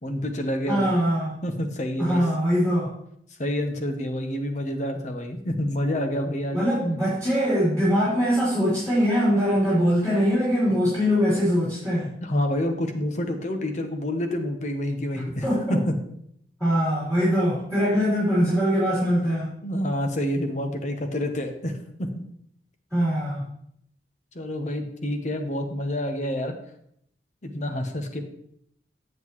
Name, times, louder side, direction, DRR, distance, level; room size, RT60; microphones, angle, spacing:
voice 1, 0.0-0.9 1.4-2.2 3.4-6.6 12.2-15.9 19.6-22.1 24.3-26.5 27.4-28.2, left 1 dB, 45° left, 5 dB, 1.0 m, -28 dB
voice 2, 0.7-1.3 2.0-2.9 6.5-12.1 15.4-15.8 16.6-19.5 22.9-23.4, equal, 10° left, -11 dB, 3.5 m, -22 dB
7.9 x 7.5 x 3.1 m, 0.71 s
head